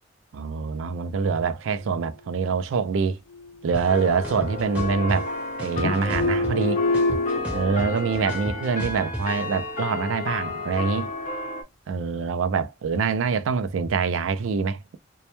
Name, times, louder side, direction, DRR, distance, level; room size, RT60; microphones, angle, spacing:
voice 1, 0.3-3.2 3.6-5.3 5.6-6.8 7.5-11.1 11.9-15.0, right 5 dB, 75° right, 0.3 m, -25 dB
sound 1, 3.3-4.3 4.6-5.5 5.8-7.4, left 2 dB, 80° left, 0.4 m, -27 dB
sound 2, 3.7-3.8 4.2-5.2 5.6-6.7 6.9-9.2, equal, 5° right, 0.6 m, -33 dB
sound 3, 3.9-11.6, left 3 dB, 40° left, 0.6 m, -32 dB
2.1 x 2.0 x 2.9 m
head